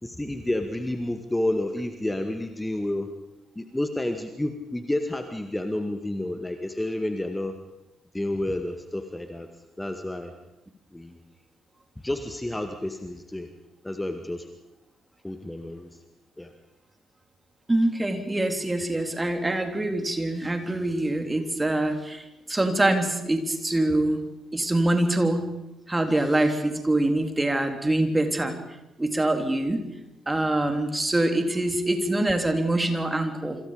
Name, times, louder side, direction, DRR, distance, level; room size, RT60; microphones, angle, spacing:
voice 1, 0.0-3.1 3.6-7.5 8.1-9.5 9.8-10.3 10.9-11.2 12.0-13.5 13.8-14.5 15.2-16.0 16.4-16.5, left 1 dB, 10° left, 7 dB, 2.0 m, -30 dB
voice 2, 17.7-24.2 24.5-25.5 25.9-28.5 29.0-29.9 30.3-33.6, right 1 dB, 15° right, 6 dB, 3.6 m, -24 dB
28.0 x 26.0 x 5.2 m, 0.95 s
figure-of-eight pair, 45°, 0 cm